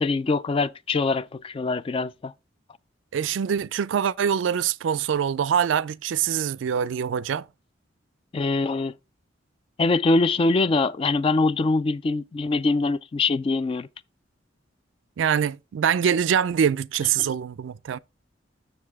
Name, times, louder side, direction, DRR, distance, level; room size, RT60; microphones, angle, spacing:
voice 1, 0.0-2.3 8.3-8.9 9.8-13.9 17.2-17.3, left 3 dB, 30° left, 0.3 m, -23 dB
voice 2, 3.1-7.5 15.2-18.0, right 8 dB, 80° right, 0.3 m, -24 dB
6.7 x 6.7 x 3.5 m
head